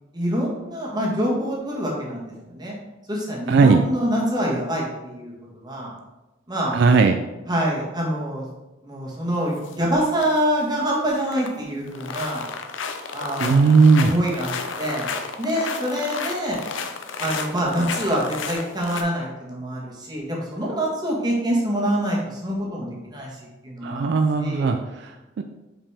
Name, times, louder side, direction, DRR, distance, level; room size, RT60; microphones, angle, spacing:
voice 1, 0.1-2.7 3.1-5.9 6.5-6.8 7.5-8.5 8.8-12.4 13.1-15.1 15.4-16.6 17.2-24.7, equal, 20° right, -3 dB, 1.4 m, -26 dB
voice 2, 3.5-3.8 6.7-7.2 13.4-14.1 23.8-25.4, right 4 dB, 65° right, 6 dB, 0.3 m, -17 dB
sound 1, 9.6-9.7 10.1-10.4 10.7-11.6 11.9-19.0, left 5 dB, 80° left, 0.6 m, -32 dB
5.5 x 5.2 x 3.4 m, 1.1 s
head